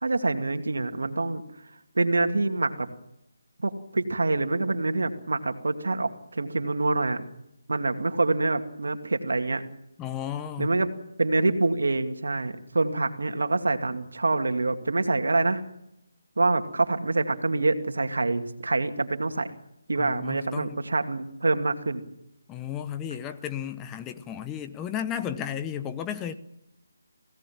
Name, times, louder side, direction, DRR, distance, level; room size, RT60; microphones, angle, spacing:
voice 1, 0.0-1.4 2.0-2.9 3.6-7.2 7.7-9.6 10.6-10.9 11.2-15.6 16.4-19.5 19.9-22.0, right 2 dB, 75° right, 2.4 m, -26 dB
voice 2, 10.0-10.7 20.0-20.8 22.5-26.3, left 9 dB, 15° left, 0.9 m, -33 dB
27.0 x 17.5 x 7.4 m
figure-of-eight pair, 160°, 0 cm